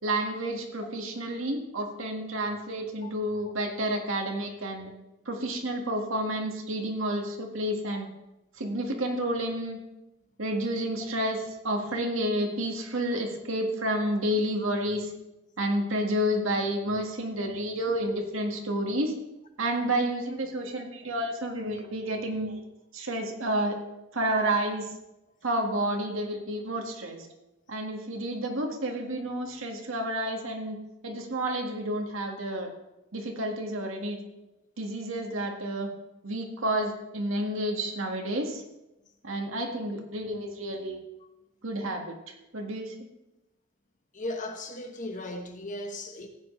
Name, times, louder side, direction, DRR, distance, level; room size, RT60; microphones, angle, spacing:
voice 1, 0.0-4.9 5.3-8.1 8.6-9.8 10.4-15.1 15.6-19.2 19.6-22.6 22.9-23.8 24.1-24.9 25.4-27.3 27.7-30.8 31.0-32.7 33.1-34.2 34.8-35.9 36.2-38.6 39.2-41.0 41.6-43.0, right 1 dB, 75° right, 1.9 m, -30 dB
voice 2, 0.5-1.0 2.2-2.3 3.0-3.1 44.1-46.3, left 1 dB, 40° left, 1.3 m, -37 dB
15.5 x 9.2 x 3.3 m
head